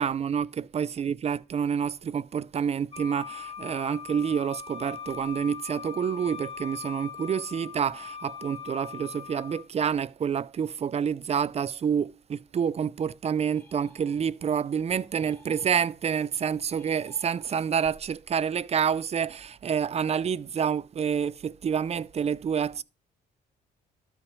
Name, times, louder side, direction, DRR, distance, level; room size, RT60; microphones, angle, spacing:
voice 1, 0.0-22.8, right 7 dB, 35° right, 0.4 m, -28 dB
Wind instrument woodwind instrument, 2.9-9.7, left 6 dB, 30° left, 1.1 m, -40 dB
sound 1, 13.5-14.5 15.1-16.1 16.7-17.9, left 1 dB, 10° left, 4.3 m, -57 dB
12.0 x 6.0 x 3.1 m
cardioid pair, 90°, 20 cm